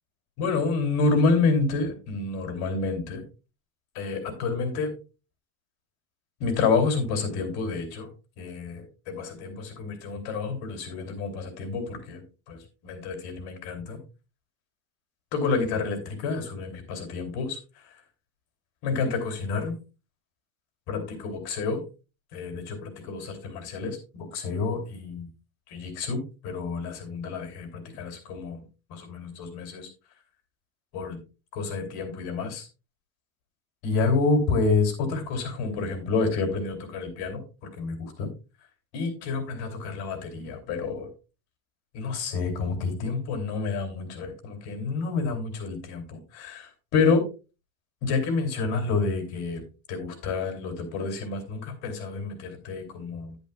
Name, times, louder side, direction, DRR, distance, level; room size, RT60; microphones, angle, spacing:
voice 1, 0.4-3.2 3.9-4.9 6.4-8.1 8.4-14.0 15.3-18.0 18.8-19.8 20.9-21.8 22.3-25.3 25.7-28.6 28.9-29.9 30.9-31.2 31.5-32.7 33.8-37.4 37.8-38.3 38.9-41.1 41.9-47.2 48.0-49.6 49.9-53.4, left 4 dB, 60° left, 5 dB, 3.2 m, -29 dB
10.5 x 10.5 x 2.3 m, 0.30 s
cardioid pair, 165°, 43 cm